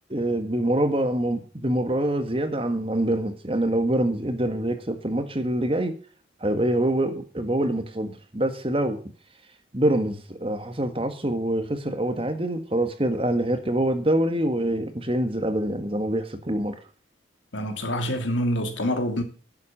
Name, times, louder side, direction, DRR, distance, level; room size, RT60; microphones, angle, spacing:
voice 1, 0.1-5.9 6.4-9.0 9.7-16.8, right 1 dB, 30° right, 1.7 m, -25 dB
voice 2, 17.5-19.2, equal, 85° left, 2.6 m, -26 dB
11.5 x 8.2 x 7.4 m
head